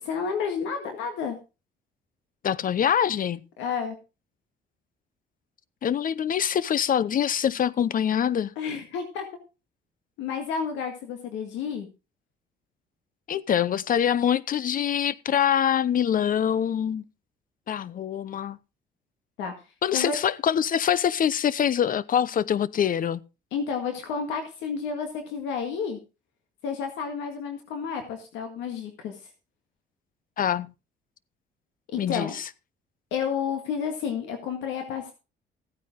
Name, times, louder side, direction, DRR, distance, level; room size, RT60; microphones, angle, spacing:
voice 1, 0.0-1.4 3.6-4.0 8.6-9.3 10.2-11.9 19.4-20.2 23.5-26.0 26.6-29.3 31.9-32.3 33.1-35.1, left 6 dB, 85° left, 1.9 m, -31 dB
voice 2, 2.4-3.4 5.8-8.5 13.3-17.0 17.7-18.6 19.8-23.2 30.4-30.7 32.0-32.3, left 9 dB, 50° left, 0.8 m, -24 dB
15.0 x 9.4 x 3.7 m
cardioid pair, 80°, 19 cm